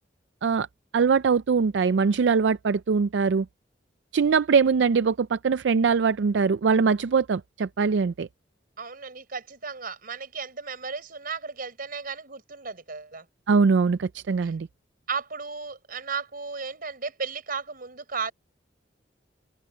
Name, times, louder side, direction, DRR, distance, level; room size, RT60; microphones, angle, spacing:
voice 1, 0.9-3.5 4.1-8.3 13.5-14.7, right 5 dB, 75° right, 0.4 m, -22 dB
voice 2, 8.8-13.3 14.4-14.6 15.1-18.3, right 5 dB, 55° right, 4.5 m, -35 dB
open air
head